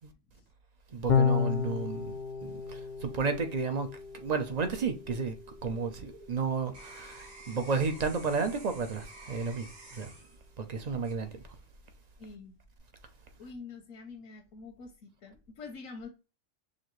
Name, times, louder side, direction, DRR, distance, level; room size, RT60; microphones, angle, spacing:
voice 1, 0.9-2.1 2.4-5.3 5.6-10.1 10.6-11.4, right 5 dB, 50° right, 0.5 m, -32 dB
Electric guitar / Bass guitar, 1.1-7.5, left 6 dB, 50° left, 0.6 m, -33 dB
sound 1, 5.6-11.8 12.3-12.8, right 2 dB, 80° right, 1.9 m, -51 dB
voice 2, 12.2-12.6 13.4-16.1, left 4 dB, 80° left, 1.2 m, -46 dB
6.4 x 2.6 x 3.0 m
omnidirectional pair, 1.3 m